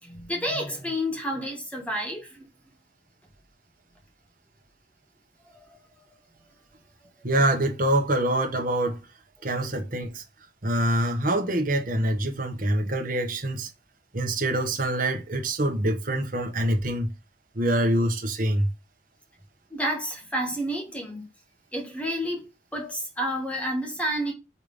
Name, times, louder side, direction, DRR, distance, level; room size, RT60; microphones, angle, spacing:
voice 1, 0.0-2.4 19.7-21.3 21.7-22.4 22.7-24.3, equal, 5° left, 1.5 m, -30 dB
voice 2, 7.2-9.0 9.4-10.2 10.6-13.7 14.1-17.1 17.5-18.7, right 1 dB, 45° right, 1.3 m, -25 dB
5.8 x 3.3 x 5.3 m
head